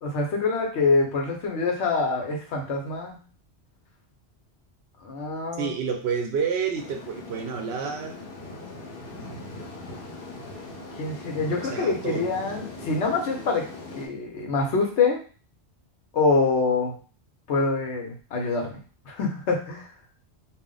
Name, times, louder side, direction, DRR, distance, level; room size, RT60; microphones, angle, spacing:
voice 1, 0.0-3.2 5.0-5.7 11.0-15.2 16.1-17.0 17.5-19.9, left 4 dB, 85° left, 1 dB, 1.1 m, -25 dB
voice 2, 5.6-8.2 11.6-12.3, right 6 dB, 75° right, 4 dB, 0.9 m, -29 dB
sound 1, 6.7-14.1, left 2 dB, 55° left, 1.0 m, -40 dB
2.5 x 2.1 x 3.8 m, 0.37 s
omnidirectional pair, 1.1 m